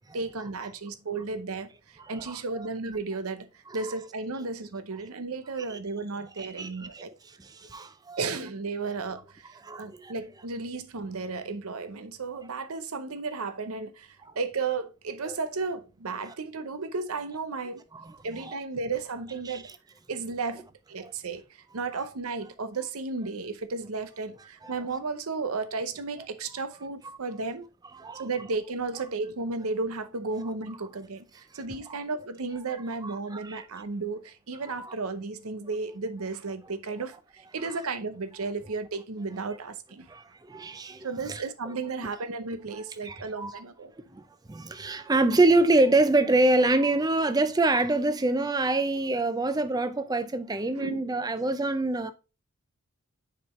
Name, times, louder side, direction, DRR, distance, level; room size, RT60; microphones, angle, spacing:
voice 1, 0.1-7.1 8.2-17.8 18.2-19.7 20.1-27.7 28.1-40.2 41.0-43.9 50.8-51.0, right 4 dB, 80° right, 0.8 m, -34 dB
voice 2, 2.0-2.4 5.7-5.8 6.4-7.0 7.4-8.2 9.6-10.1 15.2-15.4 16.3-16.4 17.9-18.2 19.5-19.6 21.0-21.1 24.6-24.7 27.0-27.2 28.0-28.3 31.9-32.0 33.0-33.7 34.7-34.9 40.1-41.4 43.0-43.6 44.5-52.1, right 2 dB, 15° right, 0.5 m, -26 dB
6.6 x 5.0 x 3.1 m
head